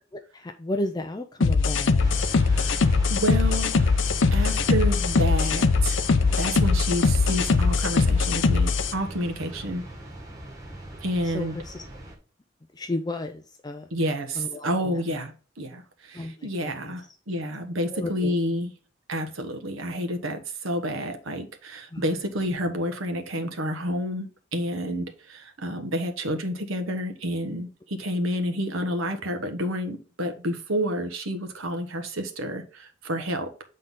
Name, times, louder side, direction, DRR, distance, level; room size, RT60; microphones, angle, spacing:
voice 1, 0.3-2.1 11.2-11.8 12.7-13.9 14.4-15.0 16.1-16.9 17.9-18.3 21.9-22.0, left 2 dB, 20° left, 0.4 m, -33 dB
sound 1, 1.4-8.9, left 4 dB, 65° left, 0.6 m, -21 dB
sound 2, 2.0-12.2, right 1 dB, 15° right, 1.4 m, -39 dB
voice 2, 2.4-3.9 4.3-6.0 6.4-9.8 11.0-11.6 13.9-18.7 19.1-33.5, equal, 85° right, 1.2 m, -29 dB
7.8 x 3.8 x 3.7 m
head